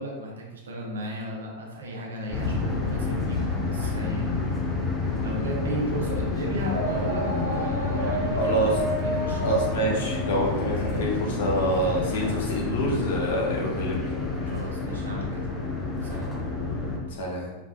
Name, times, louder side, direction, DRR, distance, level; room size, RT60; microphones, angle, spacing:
voice 1, 0.0-4.5 5.1-8.7 9.0-9.4 14.5-15.4 15.7-16.3, equal, 65° right, -1 dB, 0.9 m, -35 dB
sound 1, 2.3-17.0, left 3 dB, 15° left, 0.9 m, -29 dB
sound 2, 6.7-12.5, right 1 dB, 85° left, 1.0 m, -32 dB
voice 2, 8.4-8.8 9.4-14.0 17.1-17.5, right 1 dB, 60° left, -3 dB, 1.2 m, -26 dB
4.9 x 3.5 x 2.3 m, 1.1 s
figure-of-eight pair, 90°, 0 cm